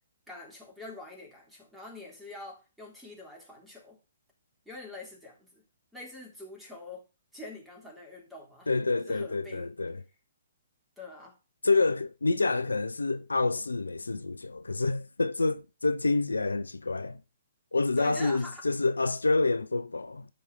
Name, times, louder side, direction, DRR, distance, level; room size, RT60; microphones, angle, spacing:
voice 1, 0.3-4.0 4.7-5.6 5.9-7.0 7.3-8.7 9.0-9.7 11.0-11.4 18.0-18.6, left 2 dB, 5° right, 3.4 m, -45 dB
voice 2, 8.7-10.0 11.6-17.2 17.7-20.3, left 3 dB, 75° left, 0.5 m, -28 dB
12.5 x 4.9 x 4.2 m
figure-of-eight pair, 125°, 0 cm